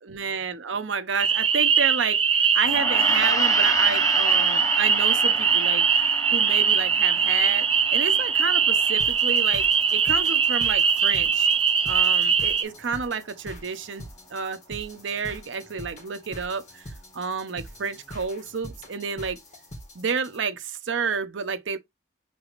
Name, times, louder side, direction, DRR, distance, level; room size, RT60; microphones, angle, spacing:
voice 1, 0.1-5.9 6.3-11.5 11.8-19.4 19.9-21.8, right 5 dB, 90° right, 0.8 m, -30 dB
sound 1, 1.2-12.6, right 6 dB, 30° right, 0.5 m, -21 dB
Gong, 2.7-12.2, left 2 dB, 20° left, 0.7 m, -34 dB
sound 2, 9.0-20.4, equal, 40° left, 1.6 m, -44 dB
6.0 x 3.3 x 2.5 m
head